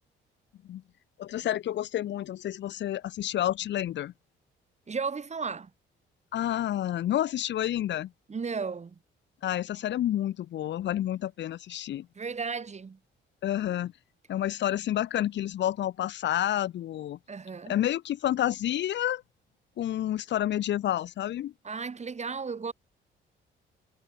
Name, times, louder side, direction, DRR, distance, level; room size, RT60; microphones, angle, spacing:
voice 1, 1.2-4.1 6.3-8.1 9.4-12.1 13.4-13.9 14.3-17.2 17.7-19.2 19.8-21.5, left 12 dB, 65° left, 0.8 m, -29 dB
voice 2, 4.9-5.7 8.3-9.0 12.2-13.0 17.3-17.8 21.6-22.7, right 5 dB, 35° right, 4.1 m, -34 dB
cardioid pair, 90°, 20 cm